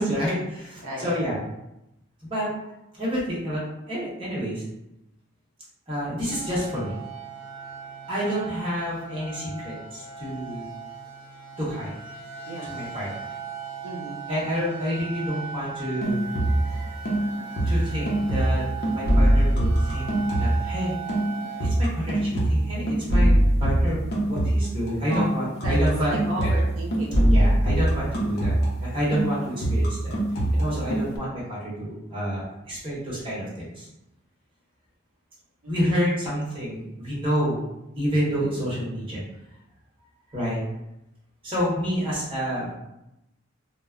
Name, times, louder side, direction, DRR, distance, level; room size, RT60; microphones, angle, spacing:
voice 1, 0.0-1.4 2.2-2.5 2.9-3.6 3.9-4.6 5.9-6.9 8.1-10.7 11.6-11.9 12.6-13.1 14.3-18.6 18.9-20.0 20.4-20.9 21.6-23.3 23.6-24.0 24.3-26.5 27.2-30.2 30.5-33.9 35.7-37.6 38.0-39.2 40.3-40.6 41.4-42.7, equal, 25° right, -8 dB, 0.9 m, -29 dB
voice 2, 0.8-1.2 12.5-12.7 13.8-14.3 25.1-25.3 25.6-25.8 26.1-27.6 35.6-35.7, right 1 dB, 80° right, -2 dB, 0.5 m, -35 dB
sound 1, 6.3-21.7, right 6 dB, 55° right, 0.8 m, -38 dB
sound 2, 16.0-16.8 17.0-20.8 21.1-28.9 29.1-31.2, right 1 dB, 50° left, 0.6 m, -23 dB
2.1 x 2.0 x 3.6 m, 0.89 s
head